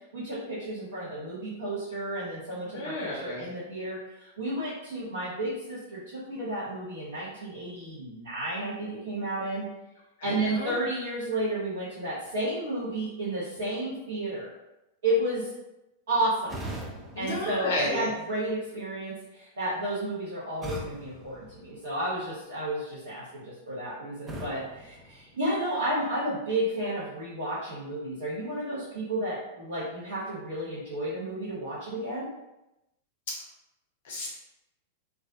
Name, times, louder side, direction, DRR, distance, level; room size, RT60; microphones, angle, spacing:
voice 1, 0.1-9.6 10.2-14.5 15.0-15.5 16.1-16.6 17.2-32.3, right 1 dB, 65° right, -9 dB, 0.8 m, -32 dB
voice 2, 2.7-3.5 10.2-10.7 17.1-18.1 34.0-34.3, left 1 dB, 55° left, -1 dB, 0.4 m, -32 dB
sound 1, 16.5-18.5 20.6-22.3 24.3-25.9, right 1 dB, 15° right, 0.5 m, -42 dB
2.4 x 2.1 x 2.5 m, 0.94 s
figure-of-eight pair, 95°, 0 cm